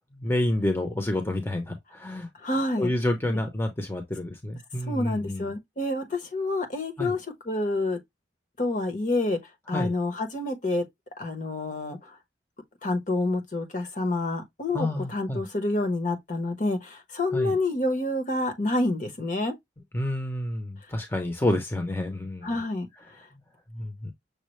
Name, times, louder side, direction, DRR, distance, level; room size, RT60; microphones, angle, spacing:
voice 1, 0.2-2.3 2.8-5.5 7.0-7.1 9.7-9.9 14.7-15.4 17.3-17.5 19.9-22.6 23.7-24.1, left 1 dB, 15° left, 0.8 m, -29 dB
voice 2, 2.4-2.9 3.3-3.4 4.9-8.0 8.6-9.4 9.7-10.8 11.2-12.2 12.8-19.5 22.4-22.9, left 2 dB, 45° left, 1.1 m, -28 dB
6.5 x 2.2 x 3.1 m
head